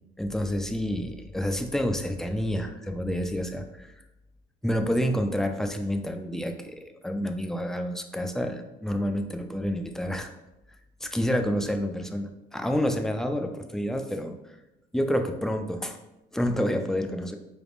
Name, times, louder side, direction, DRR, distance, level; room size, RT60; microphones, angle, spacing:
voice 1, 0.2-3.9 4.6-10.3 11.0-14.3 14.9-16.0 16.3-17.4, equal, 5° left, 5 dB, 0.3 m, -28 dB
4.1 x 3.4 x 2.4 m, 0.95 s
cardioid pair, 110°, 17 cm